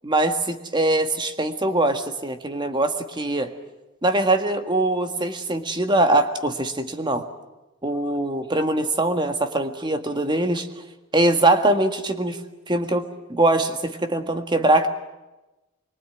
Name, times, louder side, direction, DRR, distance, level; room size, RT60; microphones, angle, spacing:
voice 1, 0.0-3.5 4.0-7.3 7.8-10.7 11.1-12.4 12.7-14.9, right 2 dB, 20° right, 7 dB, 1.7 m, -22 dB
25.5 x 23.5 x 9.3 m, 1.0 s
head